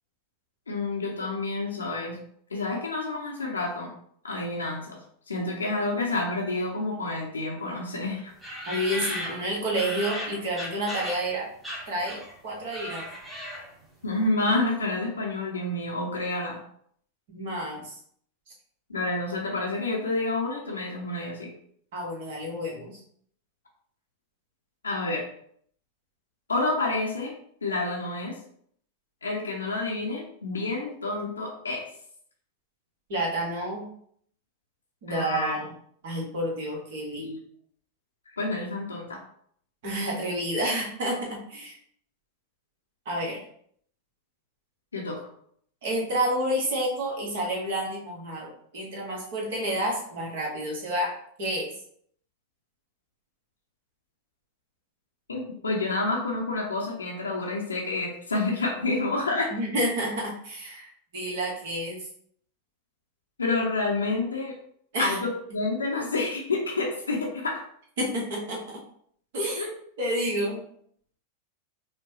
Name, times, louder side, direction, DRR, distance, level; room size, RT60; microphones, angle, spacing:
voice 1, 0.7-2.2 2.5-3.9 4.2-8.3 14.0-16.6 18.9-21.5 24.8-25.2 26.5-27.3 27.6-28.3 29.2-31.9 35.1-35.5 37.2-37.4 38.4-39.2 44.9-45.2 55.3-59.5 63.4-64.5 65.0-65.3 65.5-67.6 69.5-69.7, left 2 dB, 75° left, -2 dB, 0.7 m, -29 dB
sound 1, 8.4-11.3 11.6-12.4 12.6-13.8, left 1 dB, 10° right, 1.0 m, -36 dB
voice 2, 8.7-11.5 11.9-13.1 17.3-18.0 21.9-23.0 33.1-33.8 35.0-35.7 36.0-37.3 39.8-41.8 43.0-43.4 45.8-51.1 51.4-51.7 59.5-62.1 64.9-65.2 68.0-68.6 69.3-69.6 70.0-70.6, right 1 dB, 55° right, -2 dB, 1.2 m, -29 dB
4.8 x 2.2 x 2.8 m, 0.64 s
figure-of-eight pair, 90°, 0 cm